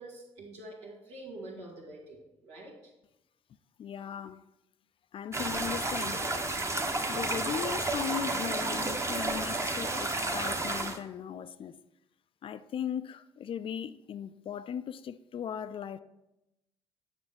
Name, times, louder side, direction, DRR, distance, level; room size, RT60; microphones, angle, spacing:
voice 1, 0.0-2.9, right 1 dB, 80° right, 1.8 m, -46 dB
voice 2, 3.8-4.4 5.1-6.2 7.1-11.8 12.4-16.0, left 8 dB, 40° left, 0.4 m, -38 dB
sound 1, 5.3-11.0, right 2 dB, 20° right, 0.9 m, -31 dB
9.8 x 5.9 x 3.5 m
figure-of-eight pair, 45°, 14 cm